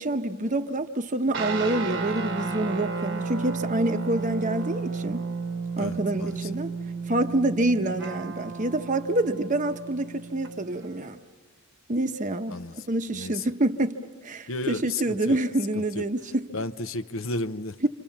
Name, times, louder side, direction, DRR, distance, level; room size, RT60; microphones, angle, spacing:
voice 1, 0.0-5.3 5.8-6.7 7.1-11.2 11.9-12.6 12.9-14.0 14.2-16.5 17.8-17.9, right 1 dB, 35° right, 0.9 m, -27 dB
sound 1, 1.3-11.0, right 4 dB, 55° right, 1.3 m, -33 dB
voice 2, 5.8-6.5 12.5-12.9 13.1-13.5 14.5-15.4 15.7-16.0 16.5-17.9, left 2 dB, 65° left, 0.8 m, -33 dB
27.5 x 27.0 x 7.2 m
head